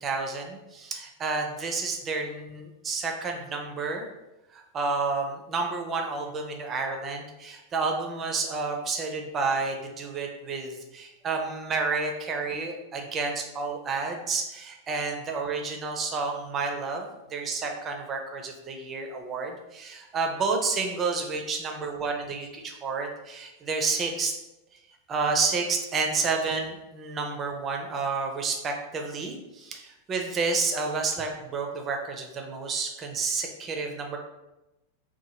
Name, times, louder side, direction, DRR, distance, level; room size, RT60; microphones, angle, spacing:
voice 1, 0.0-4.1 4.5-24.3 25.1-34.2, right 4 dB, 25° right, 2 dB, 0.5 m, -30 dB
2.9 x 2.2 x 2.9 m, 0.98 s
figure-of-eight pair, 90°, 0 cm